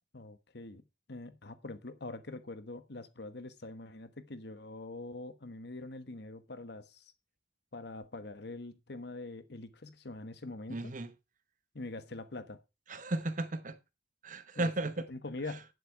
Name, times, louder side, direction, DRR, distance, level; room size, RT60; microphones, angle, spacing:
voice 1, 0.1-7.1 7.7-10.9 11.7-12.6 14.6-14.7 15.1-15.7, left 2 dB, 60° left, 1.2 m, -44 dB
voice 2, 10.7-11.1 12.9-13.8 14.2-15.1, right 2 dB, 45° right, 1.0 m, -34 dB
9.9 x 7.8 x 4.6 m
head